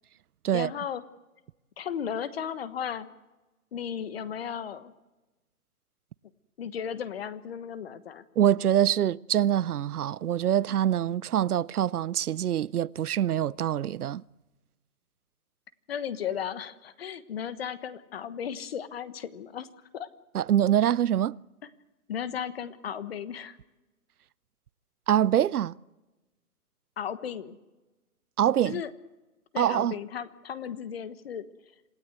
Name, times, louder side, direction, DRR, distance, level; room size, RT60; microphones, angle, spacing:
voice 1, 0.5-1.0 1.8-3.1 3.7-4.9 6.6-8.2 15.9-19.7 19.9-20.1 22.1-23.6 27.0-27.6 28.6-28.9 29.5-31.5, left 8 dB, 45° left, 1.3 m, -35 dB
voice 2, 8.4-14.2 20.3-21.3 25.1-25.7 28.4-28.8 29.6-29.9, right 10 dB, 85° right, 0.7 m, -24 dB
27.0 x 16.5 x 8.0 m
hypercardioid pair, 160°, 44 cm